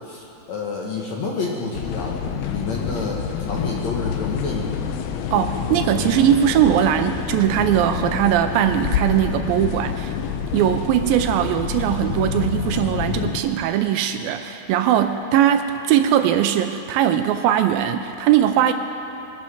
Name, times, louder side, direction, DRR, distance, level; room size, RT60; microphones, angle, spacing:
voice 1, 0.0-5.0, left 3 dB, 65° left, -2 dB, 1.9 m, -29 dB
sound 1, 1.7-13.4, left 7 dB, 85° left, 2.7 m, -27 dB
voice 2, 5.3-10.1 10.5-18.7, right 10 dB, 80° right, 8 dB, 2.2 m, -20 dB
21.5 x 11.5 x 4.9 m, 3.0 s
omnidirectional pair, 4.4 m